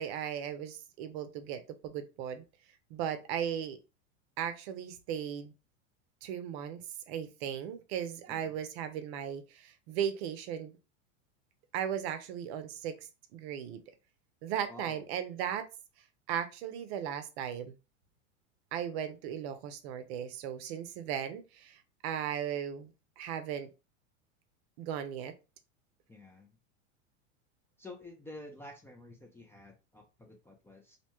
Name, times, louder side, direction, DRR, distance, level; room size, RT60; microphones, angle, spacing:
voice 1, 0.0-2.4 2.9-3.8 4.4-5.5 6.2-10.8 11.7-12.9 13.3-13.8 14.4-15.7 16.3-17.7 18.7-22.9 23.2-23.7 24.8-25.3, right 9 dB, 60° right, 0.6 m, -37 dB
voice 2, 14.7-15.2 26.1-26.6 27.8-31.0, left 1 dB, 5° left, 0.4 m, -50 dB
2.7 x 2.1 x 2.9 m
hypercardioid pair, 110°, 36 cm